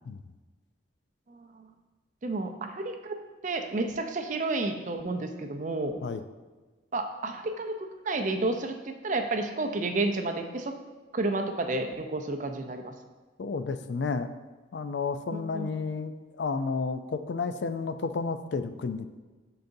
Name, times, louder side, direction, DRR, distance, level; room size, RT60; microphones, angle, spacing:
voice 1, 1.3-1.7 2.2-3.2 3.4-6.0 6.9-10.7 11.1-12.9 15.3-15.7, right 2 dB, 40° right, 6 dB, 0.5 m, -31 dB
voice 2, 13.4-14.3 14.7-19.2, left 4 dB, 65° left, 10 dB, 0.4 m, -31 dB
10.5 x 4.0 x 2.6 m, 1.3 s
head